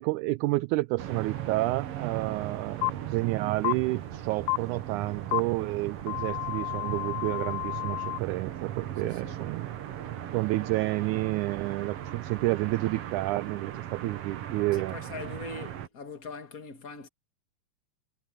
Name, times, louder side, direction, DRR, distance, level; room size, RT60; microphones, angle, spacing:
voice 1, 0.0-9.7 10.3-15.0, right 20 dB, 80° right, 1.9 m, -30 dB
sound 1, 1.0-15.9, right 11 dB, 60° right, 1.8 m, -37 dB
sound 2, 2.8-2.9 3.6-3.7 4.5-4.6 5.3-5.4 6.1-8.2, left 27 dB, 80° left, 1.7 m, -30 dB
voice 2, 9.0-9.4 14.7-17.1, left 4 dB, 35° left, 1.7 m, -41 dB
omnidirectional pair, 3.7 m